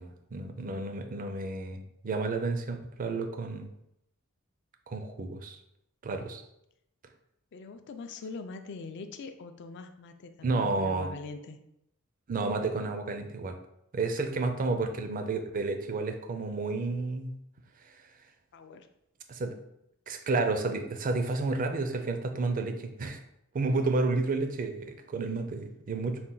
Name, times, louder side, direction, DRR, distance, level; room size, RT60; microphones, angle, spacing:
voice 1, 0.0-3.7 4.9-5.6 6.0-6.4 10.4-11.1 12.3-13.6 13.9-17.3 19.3-19.5 20.1-23.2 23.5-26.2, right 3 dB, 40° right, 6 dB, 0.4 m, -31 dB
voice 2, 7.5-11.6 18.5-18.9, left 4 dB, 50° left, 7 dB, 0.4 m, -43 dB
4.2 x 2.2 x 3.8 m, 0.80 s
head